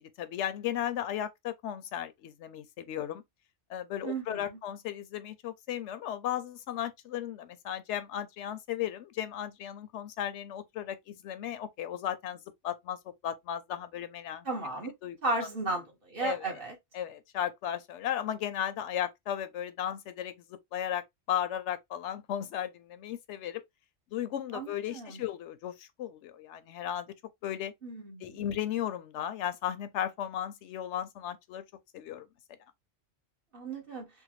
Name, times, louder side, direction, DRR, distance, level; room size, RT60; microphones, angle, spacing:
voice 1, 0.2-3.2 3.7-12.4 12.6-14.5 14.8-15.2 16.2-16.6 16.9-23.6 24.1-27.1 27.4-27.7 28.2-31.6 31.9-32.2, left 10 dB, 85° left, 0.9 m, -35 dB
voice 2, 4.0-4.4 14.4-14.9 15.2-16.7 24.5-25.2 27.8-28.3 33.5-34.1, right 2 dB, 55° right, 1.5 m, -34 dB
3.5 x 2.0 x 3.0 m
omnidirectional pair, 1.2 m